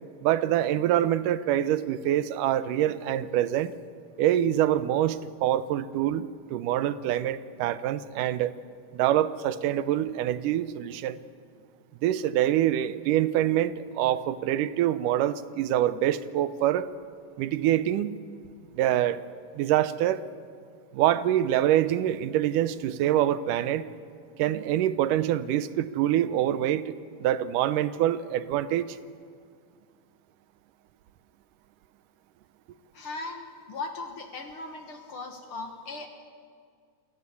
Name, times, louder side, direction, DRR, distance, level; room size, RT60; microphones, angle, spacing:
voice 1, 0.2-3.7 4.2-8.5 8.9-11.2 12.0-16.9 17.4-18.2 18.7-19.2 19.6-20.2 20.9-23.9 24.4-26.9 27.2-28.9, right 12 dB, 85° right, 14 dB, 2.3 m, -25 dB
voice 2, 32.9-36.1, left 3 dB, 50° left, 5 dB, 2.0 m, -38 dB
28.5 x 16.5 x 8.4 m, 2.1 s
omnidirectional pair, 3.7 m